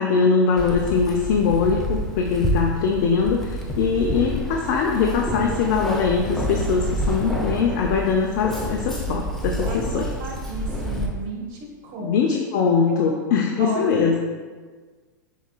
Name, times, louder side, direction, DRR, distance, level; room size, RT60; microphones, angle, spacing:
voice 1, 0.0-10.1 12.0-14.2, left 5 dB, 55° left, 1 dB, 0.5 m, -22 dB
Keys jangling, 0.6-11.1, equal, 5° left, 0.7 m, -28 dB
voice 2, 5.2-5.6 9.6-12.2 12.9-13.0 13.6-13.9, right 3 dB, 50° right, 0 dB, 1.1 m, -34 dB
5.8 x 4.1 x 2.2 m, 1.5 s
hypercardioid pair, 100°, 11 cm